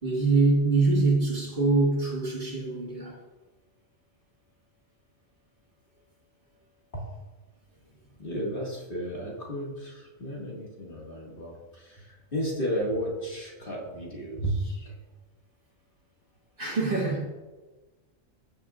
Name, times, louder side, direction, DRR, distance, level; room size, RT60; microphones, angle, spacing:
voice 1, 0.0-3.2 16.6-17.3, right 3 dB, 45° right, -3 dB, 2.1 m, -24 dB
voice 2, 8.2-14.9, equal, 45° left, -4 dB, 2.3 m, -33 dB
14.5 x 7.0 x 2.5 m, 1.2 s
omnidirectional pair, 1.3 m